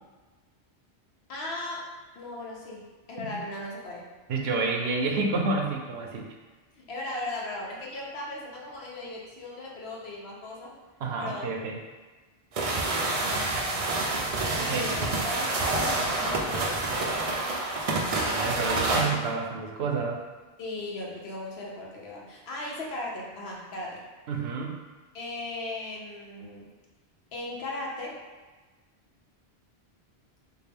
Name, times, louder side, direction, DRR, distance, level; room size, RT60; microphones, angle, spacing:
voice 1, 1.3-4.1 6.8-10.8 11.2-11.5 13.1-13.6 14.5-17.6 20.6-24.0 25.1-26.7 27.3-28.2, left 2 dB, 75° left, -2 dB, 1.0 m, -38 dB
voice 2, 4.3-6.3 11.0-11.8 14.6-14.9 18.2-20.2 24.3-24.8, right 3 dB, 80° right, 1 dB, 0.8 m, -29 dB
sound 1, 12.5-19.1, right 2 dB, 50° right, 0.4 m, -28 dB
4.6 x 2.2 x 3.3 m, 1.3 s
omnidirectional pair, 1.1 m